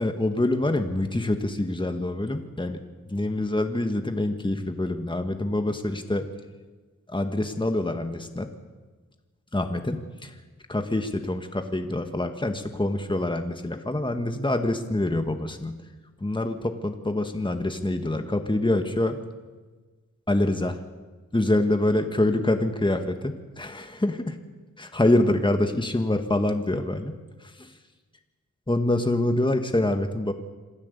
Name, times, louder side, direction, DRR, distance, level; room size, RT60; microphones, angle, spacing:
voice 1, 0.0-2.8 3.1-6.2 7.1-8.5 9.5-10.3 10.7-15.7 16.2-19.2 20.3-20.8 21.3-24.4 24.8-27.1 27.4-27.7 28.7-30.3, left 1 dB, 15° left, 6 dB, 2.0 m, -25 dB
27.0 x 15.5 x 8.5 m, 1.3 s
cardioid pair, 65°, 30 cm